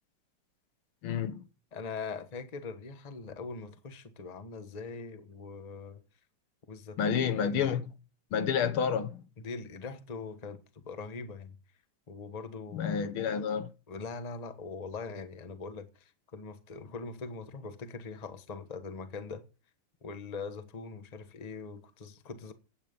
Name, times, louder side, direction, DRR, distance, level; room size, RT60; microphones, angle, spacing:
voice 1, 1.0-1.4 7.0-7.9 8.3-9.2 12.7-13.7, left 7 dB, 75° left, 1.9 m, -29 dB
voice 2, 1.7-6.0 6.7-7.7 9.4-11.6 12.1-13.1 13.9-19.4 20.0-22.5, left 4 dB, 25° left, 1.0 m, -42 dB
16.0 x 9.2 x 5.4 m
omnidirectional pair, 2.4 m